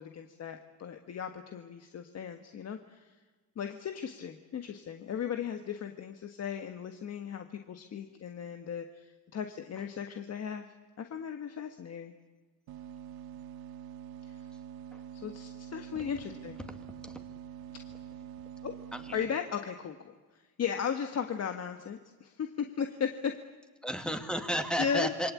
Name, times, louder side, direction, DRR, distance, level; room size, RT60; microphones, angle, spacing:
voice 1, 0.0-3.1 3.5-10.6 11.0-12.1 14.2-14.4 15.1-16.6 18.6-18.7 19.1-20.1 20.6-23.4 24.8-25.1, left 7 dB, 45° left, 6 dB, 1.6 m, -36 dB
sound 1, 12.7-19.3, right 9 dB, 80° right, 1.8 m, -46 dB
voice 2, 18.9-19.2 23.8-25.3, equal, ahead, 6 dB, 2.3 m, -33 dB
27.5 x 23.5 x 8.6 m, 1.3 s
cardioid pair, 125°, 36 cm